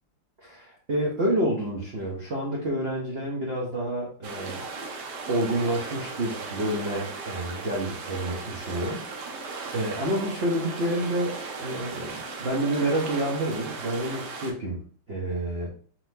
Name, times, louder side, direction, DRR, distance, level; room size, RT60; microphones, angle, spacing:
voice 1, 0.4-4.7 5.3-15.7, right 1 dB, 50° right, -3 dB, 0.8 m, -29 dB
sound 1, 4.2-14.5, right 4 dB, 65° right, 1.3 m, -37 dB
4.2 x 4.0 x 2.6 m, 0.43 s
omnidirectional pair, 2.1 m